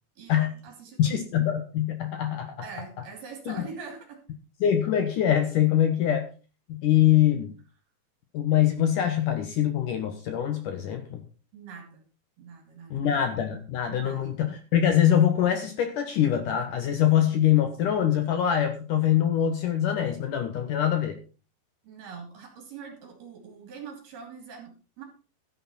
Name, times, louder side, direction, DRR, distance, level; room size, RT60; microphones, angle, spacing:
voice 1, 0.2-1.2 2.6-4.2 11.5-12.0 12.4-13.3 13.9-14.4 21.8-25.0, right 5 dB, 60° right, 2 dB, 4.6 m, -43 dB
voice 2, 1.0-2.5 3.5-3.6 4.6-6.3 6.7-7.5 8.3-11.2 12.9-21.2, left 10 dB, 65° left, 7 dB, 2.2 m, -24 dB
13.0 x 10.0 x 4.2 m, 0.34 s
omnidirectional pair, 5.1 m